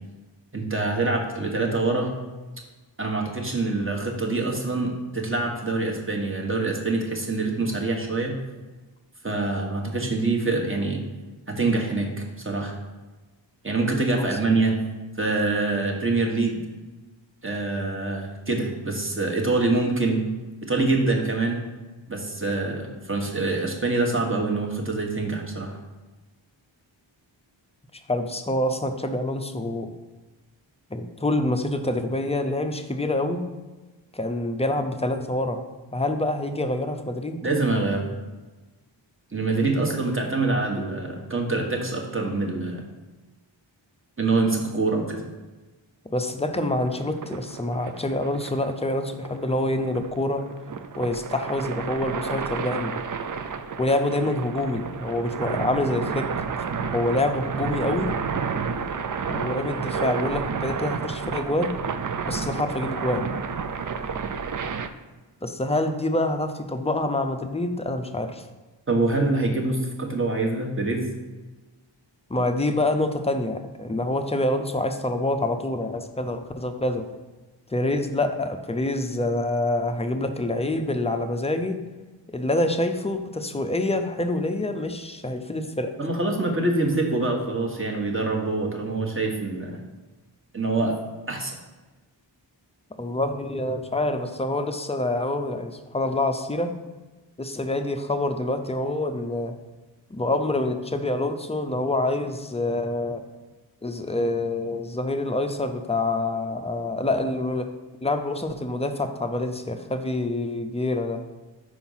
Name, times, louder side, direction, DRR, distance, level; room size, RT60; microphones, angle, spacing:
voice 1, 0.5-2.1 3.0-8.3 9.2-11.0 11.5-12.8 13.6-14.7 15.2-16.6 17.4-20.2 20.6-21.6 22.1-25.8 37.4-38.0 39.3-42.8 44.2-45.2 68.9-71.1 86.0-89.8 90.5-91.0 91.3-91.5, right 3 dB, 25° right, 0 dB, 1.2 m, -25 dB
voice 2, 27.9-29.9 30.9-33.5 34.1-35.6 35.9-37.5 46.1-50.4 51.0-53.0 53.8-56.3 56.9-58.2 59.2-61.8 62.3-63.3 65.4-68.4 72.3-77.1 77.7-81.8 82.3-85.9 93.0-96.7 97.4-99.6 100.1-103.2 103.8-107.7 108.0-111.2, left 2 dB, 15° left, 7 dB, 0.5 m, -26 dB
sound 1, 46.6-64.9, right 6 dB, 45° right, 0.4 m, -31 dB
5.0 x 4.4 x 5.5 m, 1.2 s
wide cardioid pair, 70°, 46 cm